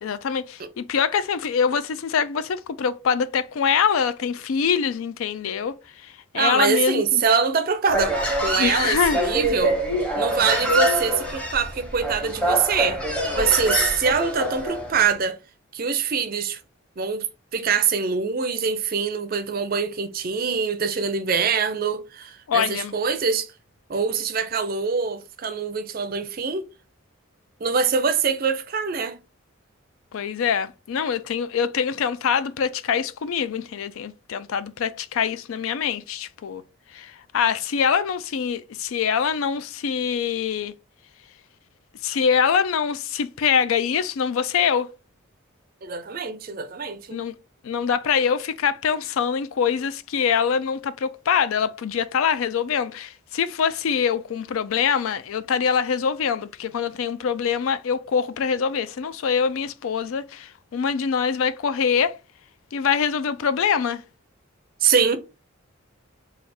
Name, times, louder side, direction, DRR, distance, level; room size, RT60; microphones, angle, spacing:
voice 1, 0.0-7.2 8.6-9.2 22.5-22.9 30.1-36.6 36.9-40.7 42.0-44.9 47.1-47.3 47.6-62.2 62.7-64.0, left 7 dB, 75° left, 0.4 m, -24 dB
voice 2, 6.3-9.8 10.1-15.4 15.7-16.6 17.0-17.2 17.5-23.5 23.9-26.6 27.6-29.2 45.8-47.2 64.8-65.2, right 6 dB, 40° right, 0.4 m, -24 dB
Human voice, 7.9-14.9, right 1 dB, 5° left, 0.7 m, -25 dB
3.3 x 2.4 x 4.2 m
head